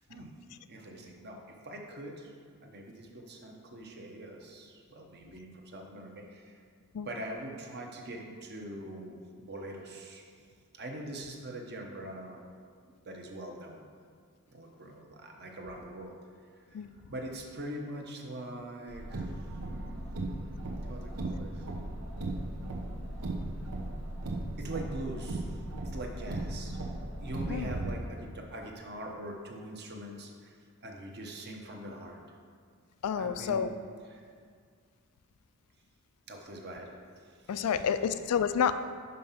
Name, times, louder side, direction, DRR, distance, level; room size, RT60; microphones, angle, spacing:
voice 1, 0.7-2.3 2.6-6.6 7.0-10.3 10.7-12.4 12.9-13.8 14.5-16.1 16.7-16.8 17.1-19.3 19.6-20.0 20.9-21.7 24.6-25.6 25.9-26.8 27.2-32.2 33.1-33.7 34.1-34.2 36.3-37.9, right 1 dB, 50° right, 1 dB, 0.9 m, -43 dB
Car, 18.9-27.9, right 2 dB, 85° right, 1.0 m, -37 dB
voice 2, 33.0-33.7 37.5-38.7, left 7 dB, 90° left, 11 dB, 0.4 m, -29 dB
5.4 x 5.4 x 5.6 m, 2.1 s
head